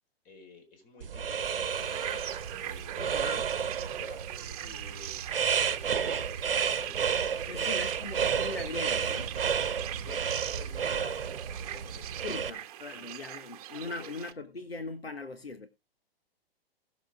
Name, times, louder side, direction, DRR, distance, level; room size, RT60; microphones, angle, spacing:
voice 1, 0.2-2.2 2.6-3.5 3.8-5.1 5.7-7.8 10.0-12.6 12.9-13.1 13.8-14.1, left 4 dB, 30° left, 4.5 m, -50 dB
sound 1, 1.0-12.5, right 7 dB, 65° right, 1.0 m, -32 dB
sound 2, 1.7-14.3, right 12 dB, 40° right, 1.1 m, -41 dB
voice 2, 3.0-3.4 7.5-9.4 12.2-15.7, left 3 dB, 85° left, 1.4 m, -40 dB
18.0 x 7.1 x 3.6 m
figure-of-eight pair, 115°, 30 cm